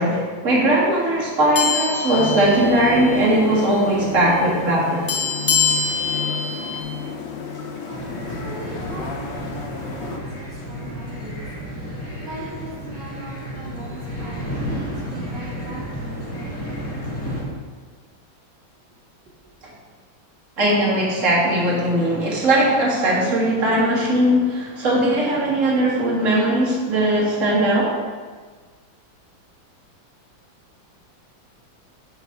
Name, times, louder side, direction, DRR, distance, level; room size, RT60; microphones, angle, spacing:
voice 1, 0.0-5.0 20.6-27.9, right 1 dB, 40° right, -5 dB, 2.0 m, -19 dB
sound 1, 1.6-3.2 3.5-3.7 5.1-6.8, left 5 dB, 50° left, 0.9 m, -24 dB
sound 2, 2.1-10.2, left 5 dB, 85° left, 0.5 m, -31 dB
sound 3, 7.9-17.4, equal, 10° left, 1.5 m, -32 dB
voice 2, 7.9-16.7, right 2 dB, 65° right, -5 dB, 1.8 m, -40 dB
8.0 x 4.0 x 5.8 m, 1.5 s
omnidirectional pair, 2.1 m